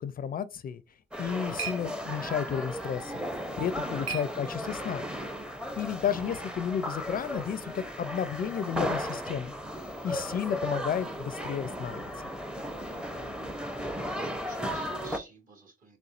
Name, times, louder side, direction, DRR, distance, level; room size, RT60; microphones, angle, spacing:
voice 1, 0.0-0.8 1.2-3.3 3.6-5.0 5.8-9.5 10.0-12.1, left 8 dB, 45° left, 0.4 m, -32 dB
sound 1, 0.8-5.1, right 7 dB, 75° right, 1.4 m, -43 dB
sound 2, 1.1-15.2, equal, 5° right, 0.6 m, -35 dB
voice 2, 3.6-4.1 12.9-16.0, right 3 dB, 45° right, 1.5 m, -51 dB
4.1 x 3.4 x 2.4 m
cardioid pair, 90°, 20 cm